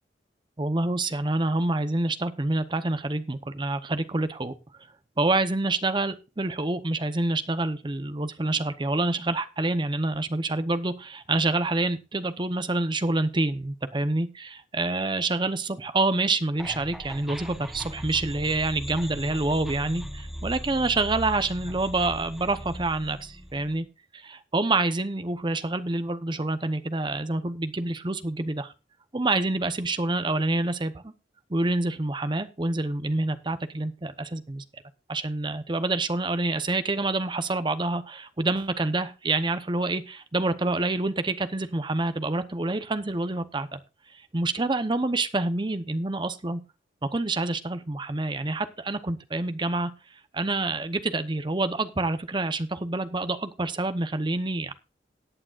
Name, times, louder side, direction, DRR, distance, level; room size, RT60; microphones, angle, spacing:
voice 1, 0.6-4.5 5.2-23.9 24.1-28.7 29.1-31.1 31.5-34.6 35.1-43.8 44.3-46.6 47.0-49.9 50.3-54.7, right 2 dB, 25° right, 11 dB, 0.8 m, -27 dB
sound 1, 16.6-23.8, equal, ahead, 1.0 m, -38 dB
17.5 x 8.8 x 2.5 m, 0.29 s
head